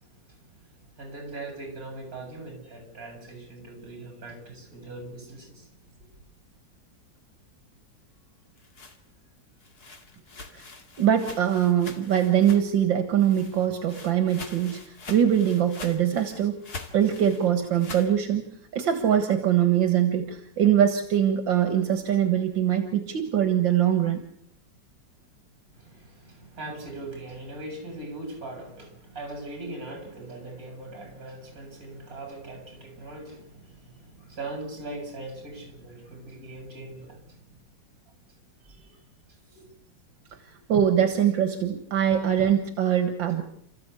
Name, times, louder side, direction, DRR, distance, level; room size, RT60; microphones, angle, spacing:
voice 1, 1.0-5.7 25.8-37.2 38.6-38.9 39.5-39.7, right 2 dB, 50° right, 4 dB, 8.4 m, -40 dB
sound 1, 8.4-12.9 13.2-18.1, left 4 dB, 55° left, 2.9 m, -44 dB
voice 2, 11.0-16.6 16.9-18.4 18.7-24.2 40.7-43.4, right 9 dB, 80° right, 7 dB, 2.3 m, -23 dB
29.5 x 14.5 x 8.4 m, 0.75 s
omnidirectional pair, 2.0 m